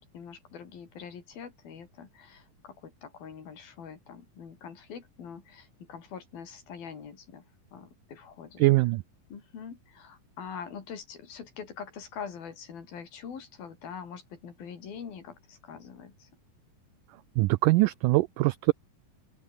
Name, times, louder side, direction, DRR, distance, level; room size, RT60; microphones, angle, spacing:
voice 1, 0.0-7.5 7.7-8.7 9.3-16.3, left 7 dB, 75° left, 5.5 m, -44 dB
voice 2, 8.6-9.0 17.4-18.7, right 20 dB, 90° right, 1.8 m, -22 dB
open air
omnidirectional pair, 4.3 m